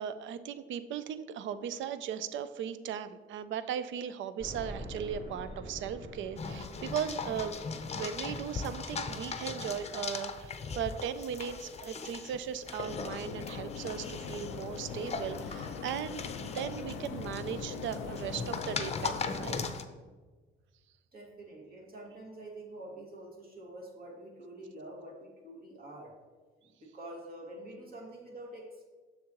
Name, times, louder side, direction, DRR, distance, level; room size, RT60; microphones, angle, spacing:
voice 1, 0.0-7.5 7.9-19.6, right 8 dB, 75° right, 13 dB, 0.5 m, -37 dB
sound 1, 4.4-13.3 13.8-13.9 14.3-14.4 15.5-15.6 15.9-16.0, equal, 25° right, 2.3 m, -48 dB
sound 2, 6.4-19.8, left 5 dB, 35° left, 0.6 m, -39 dB
sound 3, 12.9-19.5, left 6 dB, 80° left, 0.5 m, -41 dB
voice 2, 21.1-26.1 26.6-28.9, right 1 dB, 50° right, -2 dB, 2.2 m, -47 dB
7.3 x 6.4 x 3.0 m, 1.4 s
cardioid pair, 90°, 20 cm